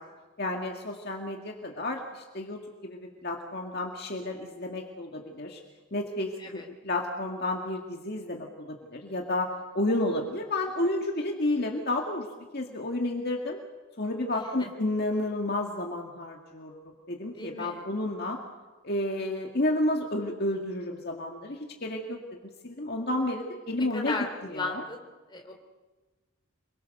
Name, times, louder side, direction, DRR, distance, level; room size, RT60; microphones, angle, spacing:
voice 1, 0.4-5.6 5.9-9.5 9.7-12.3 12.5-13.6 14.0-16.8 17.1-18.4 18.8-22.2 22.6-24.2 24.5-24.8, left 1 dB, 45° left, 1 dB, 2.1 m, -31 dB
voice 2, 14.3-14.7 17.3-17.8 23.7-25.0 25.3-25.5, left 3 dB, 20° left, 2 dB, 3.5 m, -36 dB
27.5 x 22.5 x 6.6 m, 1.2 s
head